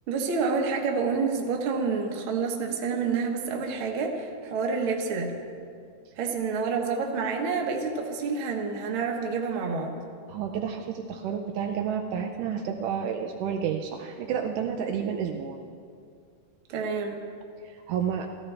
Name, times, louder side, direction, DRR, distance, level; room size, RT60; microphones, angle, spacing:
voice 1, 0.1-5.3 6.2-10.0 16.7-17.3, right 5 dB, 55° right, 1 dB, 1.5 m, -28 dB
voice 2, 10.3-15.6 17.6-18.3, right 7 dB, 80° right, 3 dB, 2.2 m, -30 dB
15.0 x 14.5 x 3.3 m, 2.3 s
omnidirectional pair, 3.7 m